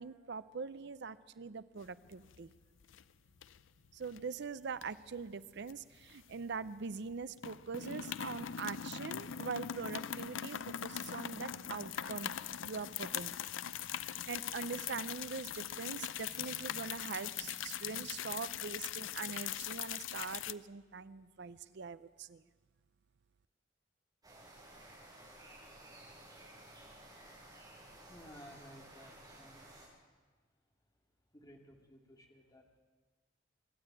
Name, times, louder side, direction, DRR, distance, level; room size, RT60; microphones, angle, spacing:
voice 1, 0.0-2.5 3.9-12.3 12.6-13.3 14.3-22.4, right 5 dB, 60° right, 15 dB, 0.6 m, -43 dB
sound 1, 1.9-2.5 2.8-3.0 3.4-4.2 4.8-6.7 7.0-7.1 7.4-20.5, left 9 dB, 85° left, 0.5 m, -41 dB
sound 2, 24.2-29.9, right 1 dB, 20° right, 7.6 m, -55 dB
voice 2, 28.1-29.7 31.3-32.8, equal, 20° left, 1 dB, 2.4 m, -56 dB
26.0 x 12.0 x 8.9 m, 1.4 s
head